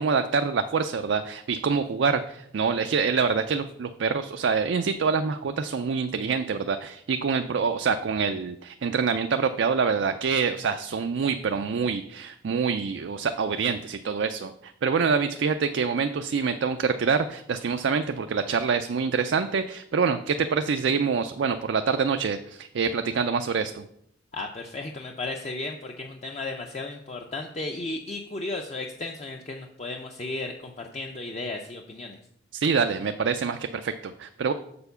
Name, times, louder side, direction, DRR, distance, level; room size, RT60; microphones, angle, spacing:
voice 1, 0.0-23.8 32.5-34.5, right 5 dB, 70° right, 8 dB, 0.4 m, -26 dB
voice 2, 24.3-32.2, left 2 dB, 35° left, 3 dB, 0.5 m, -34 dB
6.9 x 4.5 x 6.8 m, 0.75 s
head